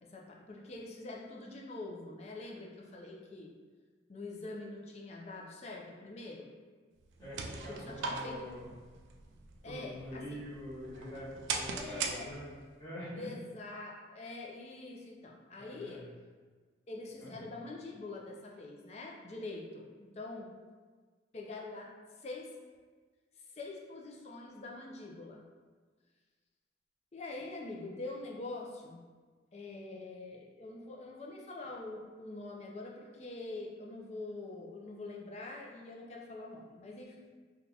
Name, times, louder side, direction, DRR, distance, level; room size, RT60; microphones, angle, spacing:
voice 1, 0.0-3.5 4.1-6.6 7.7-8.5 9.6-10.4 11.7-12.3 13.2-16.0 16.9-20.5 21.3-21.9 22.2-22.5 23.6-25.5 27.1-29.0 29.5-37.1, left 2 dB, 35° left, -1 dB, 0.4 m, -44 dB
sound 1, 7.0-12.7, right 4 dB, 75° right, 0.3 m, -41 dB
voice 2, 7.2-8.7 9.6-13.3 15.6-16.0 17.2-17.4, equal, 15° left, -13 dB, 1.3 m, -45 dB
2.8 x 2.3 x 3.8 m, 1.5 s
head